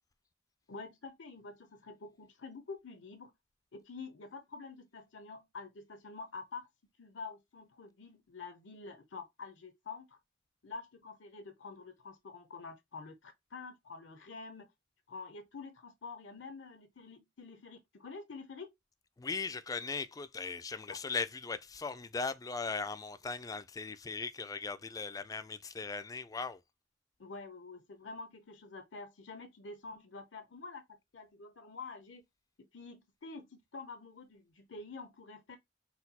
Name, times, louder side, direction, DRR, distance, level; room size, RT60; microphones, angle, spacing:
voice 1, 0.7-3.3 3.7-6.7 7.0-10.2 10.6-14.7 15.1-18.7 20.9-21.0 27.2-32.2 32.7-35.6, left 4 dB, 75° left, 0.7 m, -47 dB
voice 2, 19.2-26.6, left 4 dB, 20° left, 0.3 m, -38 dB
4.2 x 2.2 x 4.1 m
head